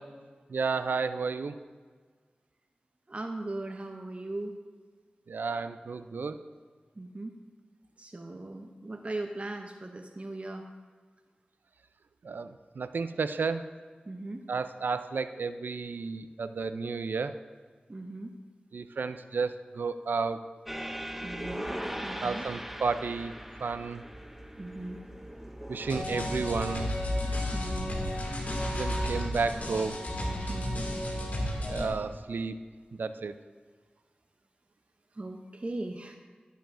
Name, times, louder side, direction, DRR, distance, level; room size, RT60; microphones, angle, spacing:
voice 1, 0.5-1.5 5.3-6.4 12.2-13.7 14.5-17.4 18.7-20.4 22.2-23.3 23.6-24.0 25.7-26.9 28.7-30.0 31.7-32.6 32.9-33.3, right 4 dB, 85° right, 11 dB, 0.4 m, -32 dB
voice 2, 3.1-4.6 7.0-7.3 8.0-10.7 14.1-14.4 17.9-18.3 21.2-21.7 22.0-22.4 24.6-25.0 27.5-28.0 30.5-30.9 35.2-36.2, right 2 dB, 40° right, 4 dB, 0.6 m, -38 dB
sound 1, 20.7-26.0, equal, 5° right, 0.7 m, -39 dB
sound 2, 25.9-31.9, left 1 dB, 55° left, 2.2 m, -32 dB
11.0 x 10.0 x 2.6 m, 1.5 s
cardioid pair, 45°, 3 cm